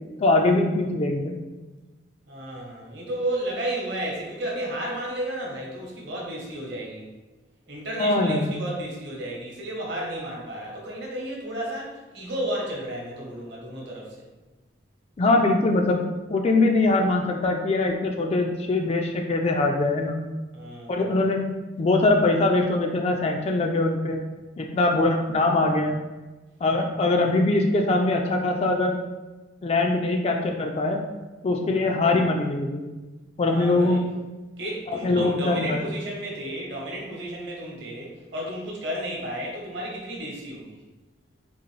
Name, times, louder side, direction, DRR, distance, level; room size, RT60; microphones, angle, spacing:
voice 1, 0.2-1.4 8.0-8.5 15.2-16.0 16.3-20.1 20.9-21.4 21.8-24.2 24.6-26.0 26.6-28.9 29.6-31.0 31.4-32.9 33.4-34.0 35.0-35.8, left 2 dB, 30° left, 3 dB, 0.3 m, -22 dB
voice 2, 2.3-7.1 7.7-14.3 20.5-21.1 26.7-26.8 33.4-34.0 34.6-40.8, right 1 dB, 55° right, -2 dB, 0.9 m, -33 dB
3.8 x 2.5 x 3.2 m, 1.2 s
head